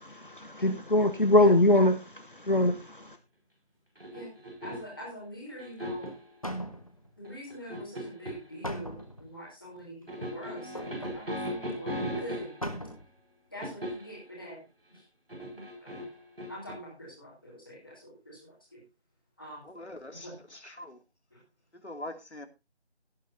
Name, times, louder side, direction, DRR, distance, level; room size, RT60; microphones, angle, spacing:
voice 1, 0.0-3.2, left 1 dB, 50° left, 1.2 m, -23 dB
sound 1, 4.0-5.0 5.6-6.2 7.2-8.5 10.1-12.8 13.6-14.2 15.3-16.7, equal, 60° right, 6.0 m, -37 dB
voice 2, 4.6-6.1 7.2-12.5 13.5-14.6 14.9-15.0 15.8-15.9 16.5-18.8 19.4-19.6 20.2-20.3 21.3-21.4, equal, 10° left, 3.2 m, -44 dB
sound 2, 6.1-6.2 6.4-7.1 8.6-9.3 10.7-11.2 11.7-11.8 12.0-12.1 12.6-13.1 13.5-13.6, equal, 30° left, 1.5 m, -38 dB
voice 3, 19.6-21.0 21.7-22.5, left 1 dB, 80° left, 2.5 m, -43 dB
17.5 x 10.0 x 2.7 m
figure-of-eight pair, 180°, 33 cm